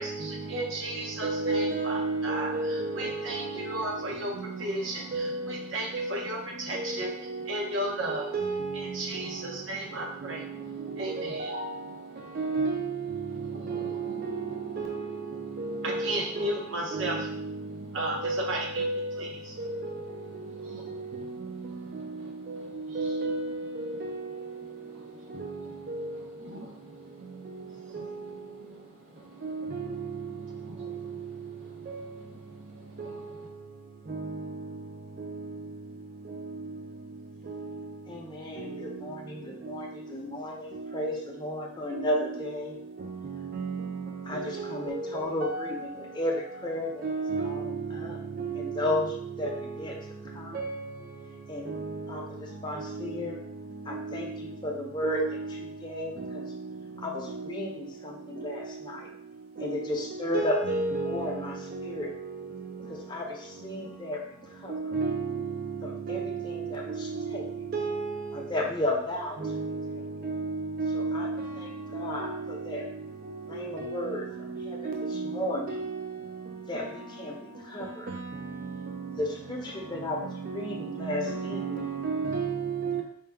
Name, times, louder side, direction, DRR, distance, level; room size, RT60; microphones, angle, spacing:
voice 1, 0.0-8.3 8.7-12.5 13.3-14.2 15.5-18.9 19.2-23.2 23.9-24.1 24.6-33.5, right 1 dB, 75° right, 0.9 m, -38 dB
voice 2, 1.2-3.2 5.1-5.4 5.9-6.1 7.0-7.1 8.3-8.8 11.4-11.6 12.4-12.7 13.7-13.8 14.8-14.9 15.9-16.1 16.4-16.5 16.9-17.1 18.2-18.5 18.8-19.1 23.0-23.5 45.4-45.6 47.0-47.4 49.4-49.5 50.6-50.7 60.3-61.1 64.9-65.1 66.1-66.2 67.7-68.1 69.4-69.6 70.8-71.2 73.8-73.9 75.7-76.0 81.3-83.0, right 3 dB, 45° right, 0.4 m, -30 dB
voice 3, 38.1-42.8 44.2-48.2 48.6-49.9 50.3-50.7 51.5-51.7 52.1-53.4 53.8-56.5 57.0-59.1 59.6-61.5 61.8-62.1 62.9-64.7 65.8-67.5 68.3-69.4 70.9-72.8 73.4-74.3 74.6-75.8 76.7-78.1 79.1-81.9, left 1 dB, 25° left, 0.6 m, -34 dB
4.5 x 2.2 x 3.3 m
head